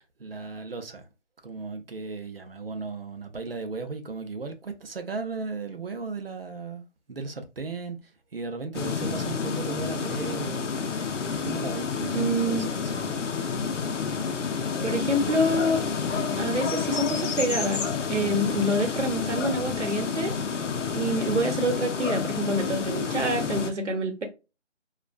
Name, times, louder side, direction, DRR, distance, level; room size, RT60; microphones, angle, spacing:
voice 1, 0.2-1.1 1.4-10.6 11.4-13.2, right 4 dB, 55° right, 0.6 m, -36 dB
sound 1, 8.7-23.7, left 5 dB, 85° left, 0.6 m, -29 dB
voice 2, 12.1-12.7 14.8-15.8 16.4-20.3 20.9-24.3, right 1 dB, 75° right, 0.9 m, -27 dB
2.4 x 2.2 x 2.4 m
figure-of-eight pair, 170°, 36 cm